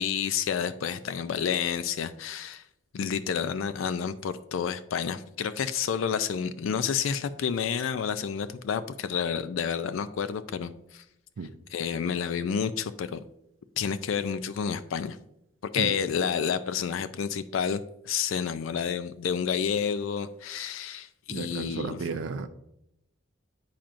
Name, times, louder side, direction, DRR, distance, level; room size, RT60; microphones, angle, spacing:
voice 1, 0.0-2.7 2.9-11.0 11.7-13.2 13.8-15.2 15.7-22.0, left 7 dB, 85° left, 12 dB, 0.4 m, -30 dB
voice 2, 21.3-22.5, right 4 dB, 80° right, 8 dB, 0.4 m, -33 dB
8.6 x 5.7 x 2.5 m, 0.81 s
head